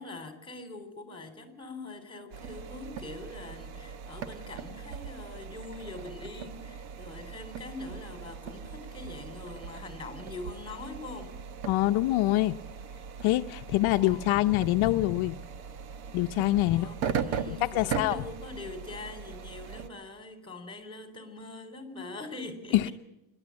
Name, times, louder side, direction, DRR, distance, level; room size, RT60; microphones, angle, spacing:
voice 1, 0.0-11.3 14.0-14.6 16.7-22.9, left 2 dB, 10° left, 7 dB, 3.8 m, -43 dB
sound 1, 2.3-19.9, right 7 dB, 70° right, 1.5 m, -39 dB
voice 2, 11.7-12.6 13.2-15.4 16.1-16.9 17.6-18.2 22.7-22.9, left 16 dB, 75° left, 8 dB, 0.8 m, -25 dB
26.5 x 11.5 x 8.6 m, 0.92 s
cardioid pair, 135°, 48 cm